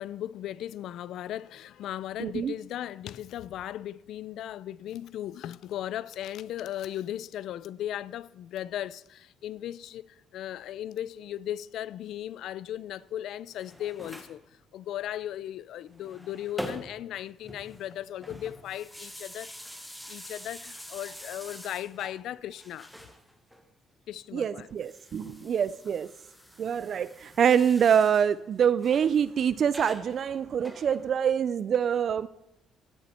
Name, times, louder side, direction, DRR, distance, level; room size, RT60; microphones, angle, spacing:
voice 1, 0.0-14.4 14.7-19.5 20.1-22.9 24.1-24.7 25.2-25.5, left 12 dB, 65° left, 0.3 m, -37 dB
voice 2, 2.2-2.5 24.3-26.1 26.6-32.3, right 8 dB, 45° right, 0.3 m, -25 dB
sound 1, 13.4-14.4 15.8-17.1 17.4-22.2 22.5-23.6 24.7-28.3 28.8-29.2 29.7-31.3, equal, ahead, 1.0 m, -45 dB
16.5 x 6.9 x 4.3 m
cardioid pair, 150°, 0 cm